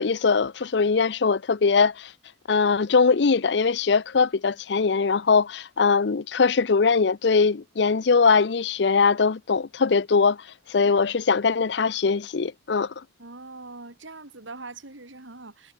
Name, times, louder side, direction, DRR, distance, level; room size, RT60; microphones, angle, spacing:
voice 1, 0.0-2.1 2.5-10.4 10.7-12.9, left 5 dB, 65° left, 0.6 m, -21 dB
voice 2, 13.2-15.7, right 3 dB, 90° right, 3.3 m, -42 dB
head